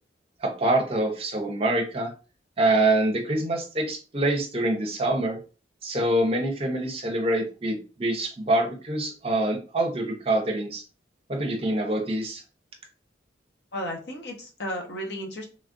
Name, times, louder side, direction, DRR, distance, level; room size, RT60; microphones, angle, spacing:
voice 1, 0.4-2.1 2.6-5.4 5.8-10.8 11.3-12.4, right 1 dB, 30° right, 3 dB, 0.6 m, -25 dB
voice 2, 13.7-15.5, equal, 65° left, 1 dB, 0.9 m, -33 dB
3.2 x 2.3 x 2.5 m, 0.34 s
head